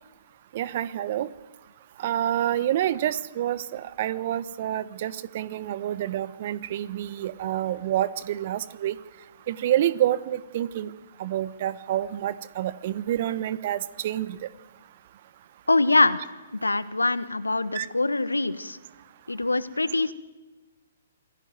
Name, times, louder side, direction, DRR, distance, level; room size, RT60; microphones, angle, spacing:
voice 1, 0.5-1.3 2.0-9.0 9.5-10.9 11.2-14.4 17.7-17.9, right 12 dB, 45° right, 17 dB, 1.0 m, -28 dB
voice 2, 15.7-16.2 16.5-18.8 19.3-20.1, left 2 dB, 80° left, 14 dB, 1.3 m, -23 dB
27.0 x 16.5 x 9.3 m, 1.2 s
figure-of-eight pair, 125°, 0 cm